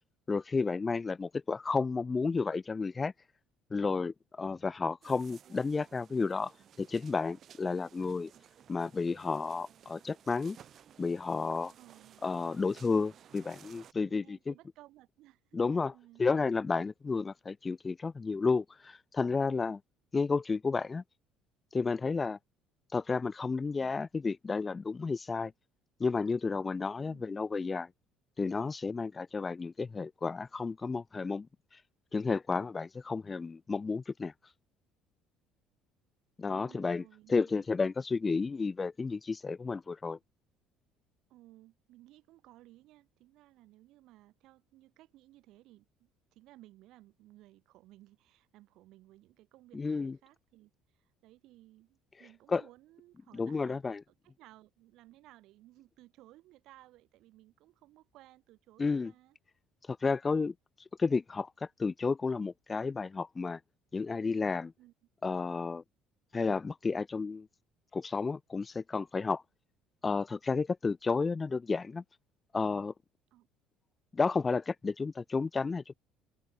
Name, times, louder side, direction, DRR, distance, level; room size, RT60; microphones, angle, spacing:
voice 1, 0.3-3.1 3.7-6.5 6.8-8.3 8.7-10.6 11.0-11.7 12.2-14.5 15.5-15.9 16.2-19.8 20.1-21.0 21.7-22.4 22.9-25.5 26.0-27.9 28.4-31.5 32.1-34.3 36.4-37.0 37.3-40.2 49.7-50.1 52.5-52.6 53.3-54.0 58.8-59.1 59.9-60.5 61.0-61.5 61.8-63.6 63.9-64.7 65.2-65.8 66.3-67.5 67.9-69.4 70.0-72.0 72.5-72.9 74.1-75.9, left 4 dB, 20° left, 0.8 m, -32 dB
sound 1, 5.0-13.9, right 9 dB, 45° right, 3.7 m, -57 dB
voice 2, 11.8-12.2 14.1-16.3 27.1-27.4 36.5-37.7 41.3-53.8 54.1-59.4 64.8-64.9 73.3-73.5, right 16 dB, 70° right, 6.2 m, -59 dB
open air
cardioid pair, 115°, 0 cm